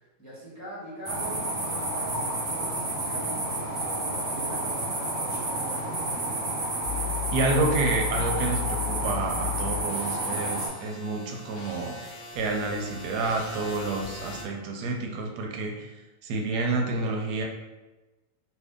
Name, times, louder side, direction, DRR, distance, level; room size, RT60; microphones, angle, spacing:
voice 1, 0.2-6.7, equal, 15° left, -9 dB, 0.6 m, -43 dB
sound 1, 1.0-10.7, right 2 dB, 50° right, 1.0 m, -30 dB
sound 2, 6.8-14.4, left 9 dB, 65° left, 0.7 m, -36 dB
voice 2, 7.3-15.9 16.2-17.4, right 3 dB, 85° right, 1 dB, 1.2 m, -29 dB
2.7 x 2.5 x 3.5 m, 1.1 s
omnidirectional pair, 1.7 m